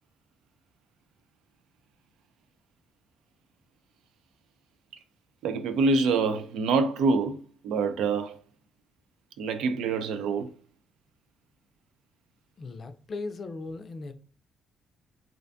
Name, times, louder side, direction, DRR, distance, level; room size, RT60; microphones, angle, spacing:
voice 1, 5.4-8.4 9.4-10.5, right 4 dB, 85° right, 0.3 m, -26 dB
voice 2, 12.6-14.1, left 3 dB, 45° left, 0.4 m, -37 dB
2.5 x 2.2 x 2.5 m
cardioid pair, 90°, 0 cm